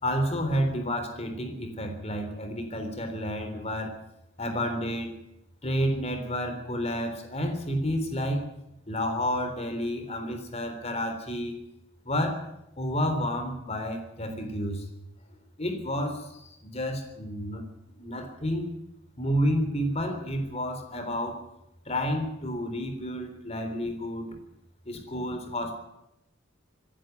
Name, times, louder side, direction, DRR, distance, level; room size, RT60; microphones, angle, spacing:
voice 1, 0.0-4.0 4.4-5.2 5.6-8.5 8.9-11.5 12.1-12.4 12.8-14.8 15.6-17.6 18.0-18.7 19.2-21.4 21.9-24.4 24.9-25.7, equal, 30° left, 6 dB, 3.6 m, -30 dB
25.5 x 11.0 x 9.5 m, 0.85 s
head